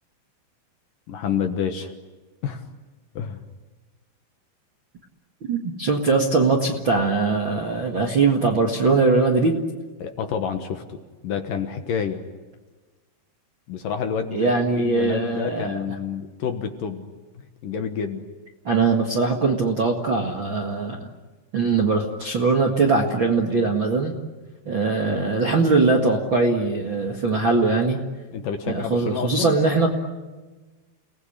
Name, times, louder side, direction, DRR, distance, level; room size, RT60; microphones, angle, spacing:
voice 1, 1.1-1.9 2.4-2.6 3.1-3.4 10.0-12.2 13.7-17.1 17.6-18.3 28.3-29.5, left 7 dB, 60° left, 6 dB, 2.6 m, -28 dB
voice 2, 5.5-9.6 14.3-15.8 18.6-21.1 21.5-24.1 24.6-28.0 28.7-29.9, right 3 dB, 45° right, 0 dB, 1.6 m, -21 dB
30.0 x 19.5 x 10.0 m, 1.3 s
omnidirectional pair, 5.0 m